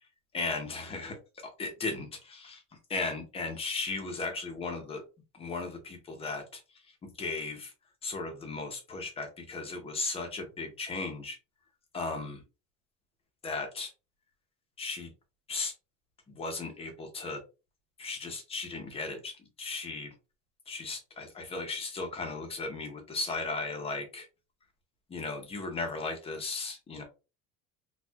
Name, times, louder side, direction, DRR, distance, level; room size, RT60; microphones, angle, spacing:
voice 1, 0.3-1.2 1.4-2.6 2.9-5.0 5.3-6.6 7.0-7.7 8.0-11.4 11.9-12.4 13.4-13.9 14.8-15.1 15.5-15.7 16.3-17.4 18.0-20.1 20.7-24.3 25.1-27.0, left 3 dB, 15° left, 4 dB, 0.7 m, -36 dB
4.4 x 2.3 x 2.3 m, 0.29 s
cardioid pair, 180°, 33 cm